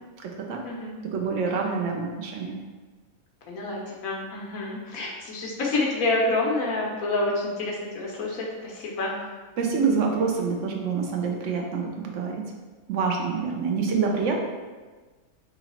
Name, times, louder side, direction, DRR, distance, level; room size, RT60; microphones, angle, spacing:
voice 1, 0.2-0.6 1.1-2.6 9.6-12.5 12.9-14.4, right 5 dB, 65° right, 0 dB, 1.0 m, -26 dB
voice 2, 3.5-9.2, left 2 dB, 75° left, -2 dB, 1.3 m, -28 dB
3.8 x 3.0 x 4.2 m, 1.3 s
omnidirectional pair, 1.5 m